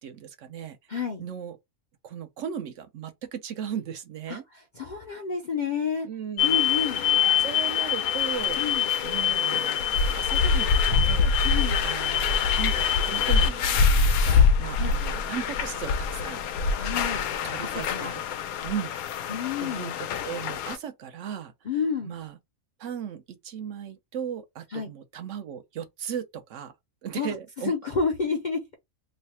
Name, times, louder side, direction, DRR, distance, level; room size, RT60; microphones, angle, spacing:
voice 1, 0.0-0.8 1.2-1.6 2.0-4.4 6.0-8.6 9.0-11.3 11.8-16.4 17.4-18.1 18.6-18.9 19.6-21.5 22.0-22.4 22.8-26.7 27.0-27.7, right 8 dB, 70° right, 0.9 m, -37 dB
voice 2, 0.9-1.2 4.3-4.4 4.8-6.1 6.4-7.0 8.6-8.9 11.4-11.9 14.8-14.9 16.7-17.2 17.6-18.1 19.3-20.0 21.7-22.2 24.7-24.9 27.2-27.3 27.6-28.7, left 5 dB, 50° left, 0.5 m, -30 dB
sound 1, 6.4-20.8, left 6 dB, 90° left, 1.0 m, -24 dB
3.1 x 2.1 x 4.2 m
omnidirectional pair, 1.5 m